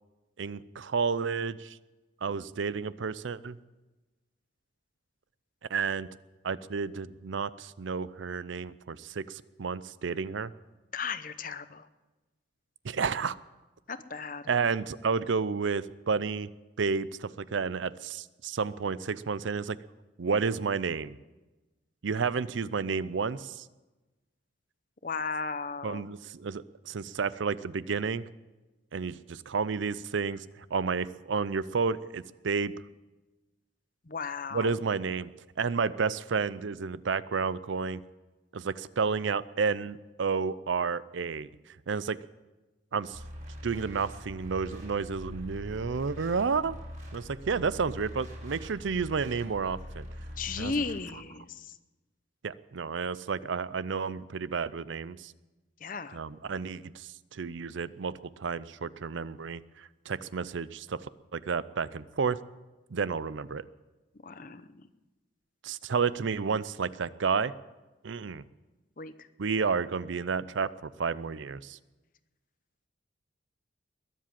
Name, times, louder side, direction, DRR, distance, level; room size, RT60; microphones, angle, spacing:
voice 1, 0.4-1.8 2.2-3.6 5.7-6.1 6.4-10.5 12.8-13.4 14.5-16.5 16.8-19.8 20.2-21.2 22.0-23.6 25.8-28.3 28.9-30.4 30.7-32.7 34.5-35.3 35.6-38.0 38.5-41.5 41.9-42.2 42.9-43.2 43.6-46.8 47.1-50.1 50.6-50.7 51.1-51.2 52.4-55.3 56.1-58.1 58.4-61.0 61.3-62.4 62.9-63.6 65.6-67.5 68.0-68.4 69.4-71.8, right 5 dB, 75° right, 17 dB, 0.5 m, -31 dB
voice 2, 10.9-11.8 13.9-14.4 25.0-26.0 34.1-34.7 50.4-51.5 55.8-56.2 64.2-64.6 69.0-69.1, left 4 dB, 45° left, 12 dB, 0.7 m, -35 dB
sound 1, 43.1-51.0, equal, 40° right, 4.0 m, -43 dB
21.5 x 7.6 x 7.6 m, 1.1 s
head